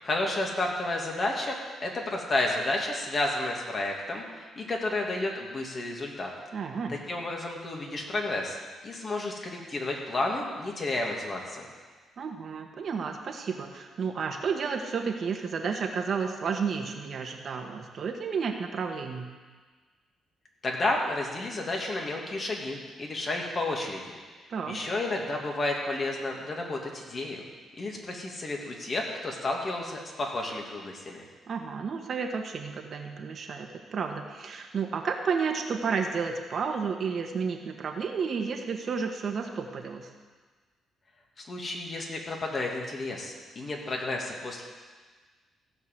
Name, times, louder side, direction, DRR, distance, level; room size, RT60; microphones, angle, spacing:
voice 1, 0.0-1.6 1.8-6.3 6.9-8.6 8.8-11.7 20.6-24.1 24.7-27.5 27.7-31.2 41.4-44.6, left 2 dB, 40° left, 0 dB, 2.5 m, -31 dB
voice 2, 6.5-7.0 12.2-19.3 24.5-24.8 31.4-40.1, right 5 dB, 55° right, 4 dB, 1.5 m, -31 dB
16.0 x 5.4 x 7.7 m, 1.4 s
cardioid pair, 90°, 0 cm